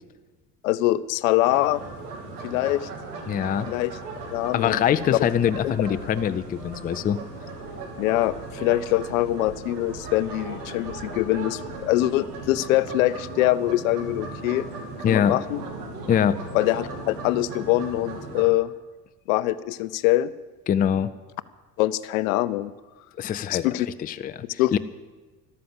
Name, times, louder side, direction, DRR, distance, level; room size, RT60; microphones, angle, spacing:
voice 1, 0.6-1.8 2.4-2.9 3.6-4.0 4.3-4.8 5.1-5.2 5.6-5.7 8.0-14.7 15.1-15.6 16.5-18.7 19.3-20.3 21.8-22.7 23.5-23.9 24.6-24.8, left 16 dB, 60° left, 17 dB, 0.7 m, -23 dB
sound 1, 1.4-18.4, right 3 dB, 70° right, 2.6 m, -37 dB
voice 2, 3.3-3.7 4.5-7.2 15.0-15.4 16.1-16.4 20.7-21.1 23.2-23.7 24.0-24.8, left 9 dB, 20° left, 13 dB, 0.5 m, -23 dB
13.0 x 12.5 x 7.7 m, 1.3 s
figure-of-eight pair, 65°, 47 cm